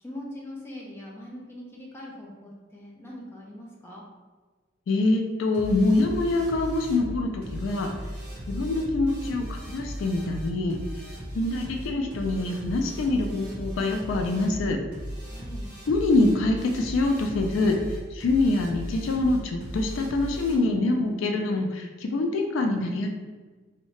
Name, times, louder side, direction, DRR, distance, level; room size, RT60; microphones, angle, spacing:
voice 1, 0.0-4.0 15.3-15.7, left 1 dB, 10° left, -4 dB, 0.5 m, -42 dB
voice 2, 4.9-7.9 8.5-10.8 11.3-14.8 15.9-17.8 18.1-23.1, left 2 dB, 70° left, 3 dB, 0.3 m, -25 dB
sound 1, 5.5-20.6, equal, 5° right, 1.2 m, -37 dB
2.7 x 2.1 x 3.0 m, 1.3 s
head